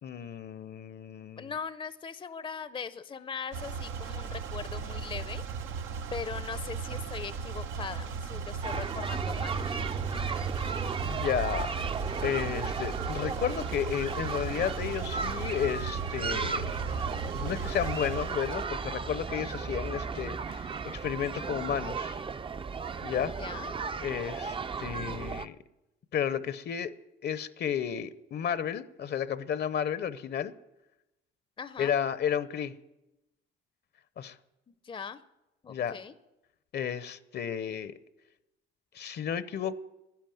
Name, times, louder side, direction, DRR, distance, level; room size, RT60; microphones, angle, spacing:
voice 1, 0.0-1.5 11.0-11.7 12.2-16.7 17.3-22.2 23.0-23.3 24.0-25.6 26.1-26.9 27.2-30.5 31.8-32.7 34.2-34.4 35.7-35.9 36.7-37.9 38.9-39.8, left 8 dB, 55° left, 0.7 m, -32 dB
voice 2, 1.4-5.4 6.1-9.6 23.2-23.8 31.6-32.0 34.7-35.2 35.6-36.2, left 6 dB, 25° left, 0.6 m, -40 dB
sound 1, 3.5-18.6, right 5 dB, 90° right, 0.9 m, -37 dB
sound 2, 8.6-25.5, right 5 dB, 25° right, 0.5 m, -35 dB
11.5 x 10.5 x 9.3 m
cardioid pair, 90°, 20 cm